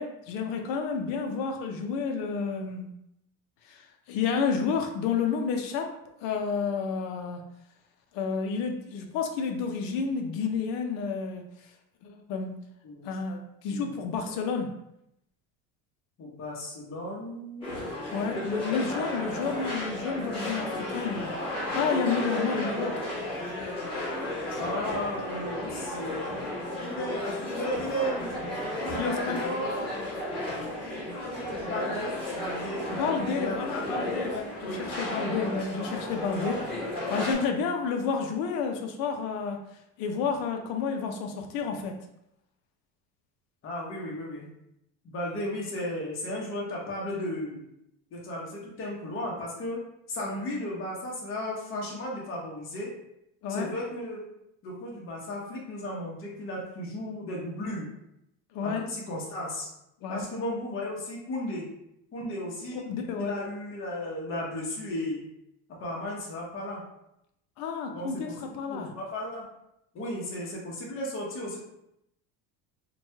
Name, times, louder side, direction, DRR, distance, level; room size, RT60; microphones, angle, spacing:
voice 1, 0.0-2.9 3.6-5.9 6.2-7.4 8.1-11.4 12.0-12.6 13.0-14.7 18.1-21.3 21.7-23.1 29.0-29.5 32.9-36.6 37.1-39.6 40.0-42.0 53.4-53.7 58.5-58.9 60.0-60.3 62.7-63.3 67.6-68.9, left 5 dB, 60° left, 4 dB, 0.6 m, -30 dB
voice 2, 16.2-17.9 24.6-26.2 26.8-28.4 28.8-29.9 30.8-31.0 31.2-32.9 33.4-34.0 34.6-34.8 36.2-36.5 43.6-44.5 45.0-47.6 48.1-52.9 53.5-54.2 54.6-57.9 58.6-59.7 60.1-61.7 62.1-62.9 63.2-65.2 65.8-66.8 67.9-69.5 69.9-71.6, left 1 dB, 35° left, -3 dB, 0.9 m, -35 dB
sound 1, 17.6-37.3, left 1 dB, 15° left, 1.3 m, -33 dB
2.9 x 2.2 x 2.8 m, 0.80 s
supercardioid pair, 130°, 39 cm